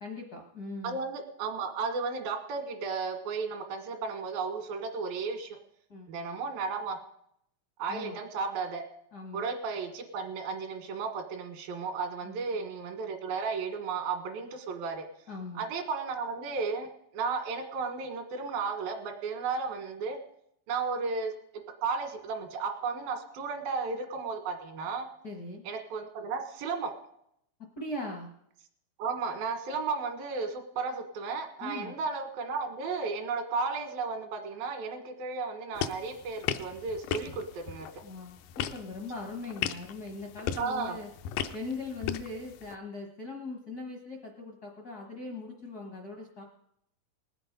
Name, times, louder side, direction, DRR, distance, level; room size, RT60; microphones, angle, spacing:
voice 1, 0.0-1.0 5.9-6.1 7.9-8.2 9.1-9.4 12.2-12.4 15.3-15.6 25.2-25.6 27.8-28.3 31.6-31.9 38.0-41.1 41.5-46.4, left 3 dB, 65° left, 2 dB, 0.9 m, -40 dB
voice 2, 0.8-5.6 6.1-7.0 7.8-8.8 9.3-15.1 15.6-16.9 17.1-20.2 20.7-21.3 21.8-25.1 25.6-26.9 29.0-37.9 40.6-41.0, right 4 dB, 85° right, 6 dB, 3.4 m, -34 dB
sound 1, 35.7-42.8, left 9 dB, 85° left, 2.4 m, -37 dB
19.5 x 8.0 x 5.3 m, 0.74 s
omnidirectional pair, 4.1 m